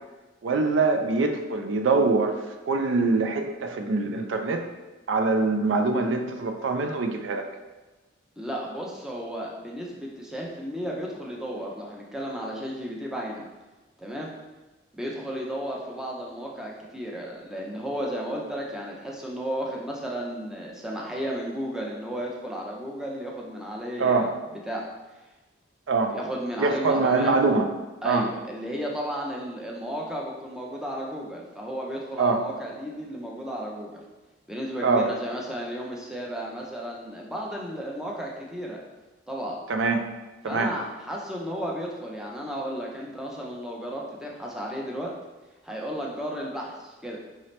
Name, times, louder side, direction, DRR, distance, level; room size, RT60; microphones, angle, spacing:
voice 1, 0.4-2.4 2.7-4.6 5.1-7.5 24.0-24.3 25.9-26.1 26.6-27.7 28.0-28.3 32.2-32.4 34.8-35.1 39.7-40.1 40.4-40.7, right 3 dB, 80° right, 5 dB, 0.4 m, -23 dB
voice 2, 8.4-13.5 14.0-14.3 14.9-24.3 24.7-24.9 26.1-27.4 28.0-34.0 34.5-38.8 39.3-39.6 40.4-45.1 45.6-47.2, equal, 5° right, -2 dB, 0.5 m, -33 dB
4.9 x 2.8 x 3.2 m, 1.1 s
head